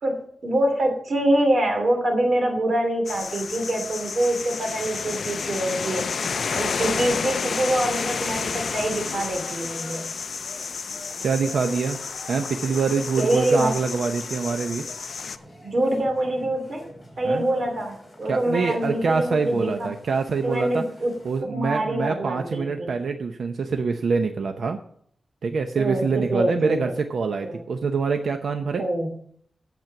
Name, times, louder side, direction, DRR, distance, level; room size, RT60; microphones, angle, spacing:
voice 1, 0.0-6.0 6.5-10.1 13.2-13.8 15.6-16.8 17.2-19.9 20.4-21.1 21.4-22.9 25.8-26.8 27.4-27.6 28.8-29.1, right 1 dB, 55° right, 3 dB, 2.9 m, -25 dB
sound 1, 3.0-15.4, left 5 dB, 65° left, 0.4 m, -31 dB
sound 2, 9.4-21.4, equal, 20° left, 3.8 m, -46 dB
voice 2, 11.2-12.0 12.3-14.9 17.2-17.5 18.3-20.8 21.2-24.8 25.4-28.8, right 5 dB, 80° right, 6 dB, 0.7 m, -25 dB
9.3 x 7.5 x 5.9 m, 0.63 s
wide cardioid pair, 125°, 0 cm